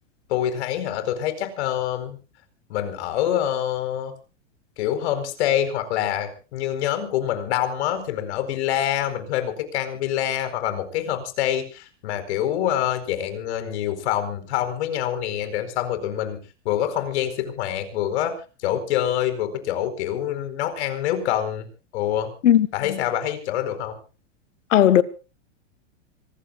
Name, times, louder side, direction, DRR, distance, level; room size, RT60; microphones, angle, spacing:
voice 1, 0.3-2.2 2.7-4.1 4.8-16.4 16.6-18.3 18.6-21.7 21.9-22.3 22.7-24.0, left 11 dB, 60° left, 4.7 m, -26 dB
voice 2, 22.4-23.0 24.7-25.0, left 11 dB, 85° left, 1.5 m, -17 dB
25.5 x 19.0 x 2.5 m
supercardioid pair, 140°, 37 cm